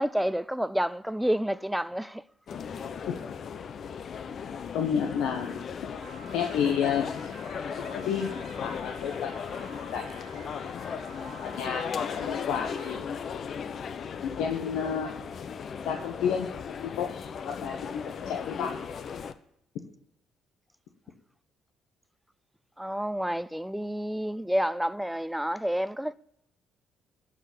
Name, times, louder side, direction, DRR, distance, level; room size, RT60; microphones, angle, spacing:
voice 1, 0.0-2.2 3.0-3.1 22.8-26.1, equal, 5° right, 0.5 m, -29 dB
sound 1, 2.5-19.3, left 6 dB, 55° left, 0.8 m, -37 dB
voice 2, 4.7-5.6 6.3-7.3 7.9-8.3 8.6-9.3 9.9-10.0 10.3-10.8 11.4-13.0 14.2-15.1 15.8-16.5 16.8-17.2 17.5-18.7, left 7 dB, 85° left, 1.2 m, -30 dB
Piano, 6.0-13.0, right 8 dB, 65° right, 1.7 m, -51 dB
12.0 x 5.0 x 8.4 m
supercardioid pair, 80°, 0 cm